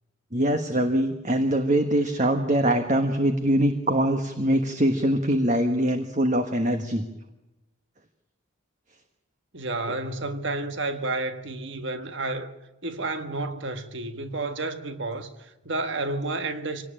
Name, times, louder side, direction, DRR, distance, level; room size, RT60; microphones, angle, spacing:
voice 1, 0.3-7.0, right 1 dB, 35° right, 1.3 m, -23 dB
voice 2, 9.5-12.5 12.8-16.9, right 2 dB, 60° right, 1.5 m, -31 dB
25.0 x 18.5 x 8.9 m
head